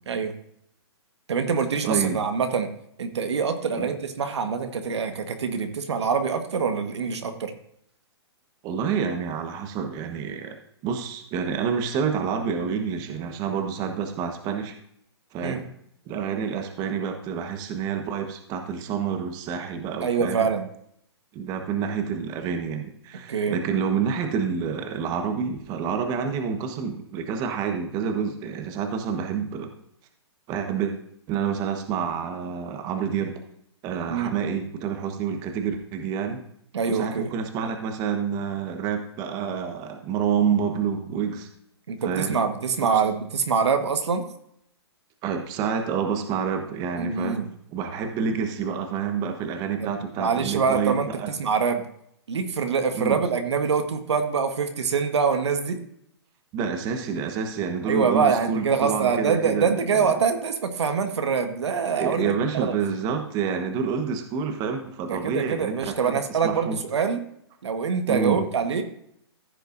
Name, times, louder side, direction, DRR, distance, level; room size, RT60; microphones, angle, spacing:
voice 1, 1.3-2.7 3.0-7.5 15.4-15.6 20.0-20.7 23.3-23.6 34.1-34.3 36.7-37.3 41.9-44.2 47.0-47.5 49.8-49.9 50.2-51.1 51.4-51.8 52.3-55.8 57.9-62.8 65.1-67.2 67.6-68.8, right 5 dB, 75° right, 7 dB, 1.4 m, -25 dB
voice 2, 1.8-2.2 3.8-3.9 8.6-10.6 10.8-14.7 15.3-15.6 16.1-20.5 21.3-29.7 30.5-30.9 31.3-33.4 33.8-36.4 36.9-41.5 42.0-42.4 42.8-43.0 45.2-47.4 47.7-51.3 52.9-53.2 56.5-60.1 62.0-66.8 68.1-68.4, right 6 dB, 25° right, 5 dB, 1.2 m, -28 dB
15.0 x 6.6 x 2.6 m, 0.71 s
hypercardioid pair, 140°, 14 cm